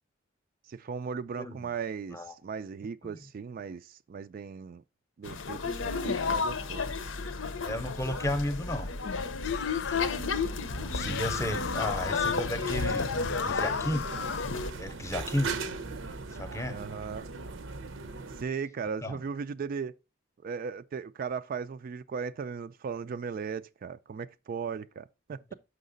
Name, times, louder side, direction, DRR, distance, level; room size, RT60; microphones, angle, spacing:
voice 1, 0.7-4.8 5.2-6.9 16.7-17.3 18.3-19.9 20.4-25.5, right 6 dB, 45° right, 0.3 m, -37 dB
voice 2, 1.3-1.7 2.1-2.3 7.6-8.9 10.7-13.1 13.4-14.1 14.7-15.5 16.4-16.8 19.0-19.2, left 1 dB, 15° left, 0.7 m, -33 dB
sound 1, 5.2-14.7, left 4 dB, 90° left, 0.7 m, -32 dB
sound 2, 9.4-10.2 11.0-12.3 13.1-14.6, left 8 dB, 60° left, 0.4 m, -38 dB
sound 3, 11.0-18.4, right 3 dB, 90° right, 0.7 m, -39 dB
6.4 x 5.7 x 3.9 m
head